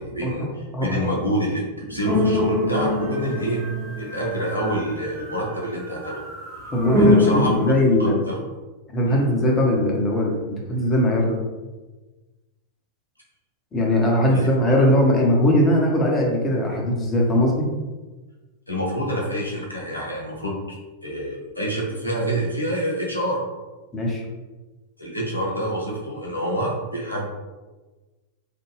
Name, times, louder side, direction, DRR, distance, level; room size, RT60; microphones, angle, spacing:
voice 1, 0.0-3.7 4.0-6.2 7.0-7.5 8.0-8.3 9.1-9.2 14.3-14.5 18.7-23.4 25.0-27.3, equal, 85° left, -3 dB, 0.7 m, -27 dB
voice 2, 0.7-1.1 6.7-8.2 8.9-11.4 13.7-17.7 23.9-24.2, left 1 dB, 20° left, -1 dB, 0.8 m, -20 dB
sound 1, 2.0-5.6 6.0-7.7, left 2 dB, 15° right, 0.8 m, -23 dB
3.3 x 2.2 x 3.2 m, 1.2 s
figure-of-eight pair, 90°, 0 cm